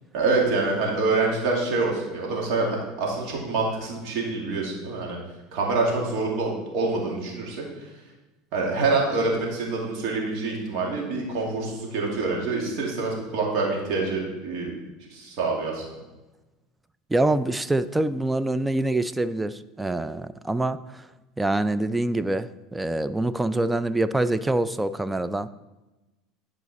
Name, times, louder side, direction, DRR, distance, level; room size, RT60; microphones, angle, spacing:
voice 1, 0.1-5.2 5.5-7.9 8.5-14.7 15.1-15.8, right 3 dB, 65° right, -2 dB, 2.4 m, -26 dB
voice 2, 17.1-21.0 21.4-25.5, right 2 dB, 10° right, 14 dB, 0.4 m, -25 dB
10.5 x 5.0 x 4.1 m, 1.1 s
supercardioid pair, 100°, 0 cm